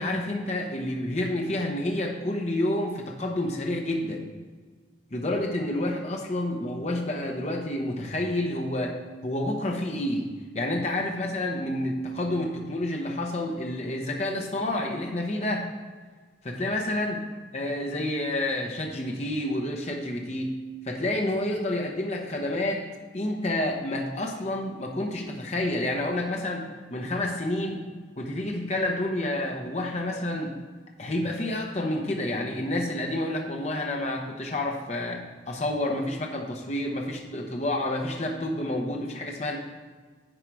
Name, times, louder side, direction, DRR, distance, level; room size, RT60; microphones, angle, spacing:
voice 1, 0.0-4.2 5.1-9.0 9.2-15.7 16.4-17.2 17.5-20.6 20.9-22.9 23.1-27.8 28.2-30.6 31.0-39.6, left 1 dB, 35° left, 1 dB, 0.8 m, -29 dB
10.0 x 4.7 x 4.6 m, 1.4 s
head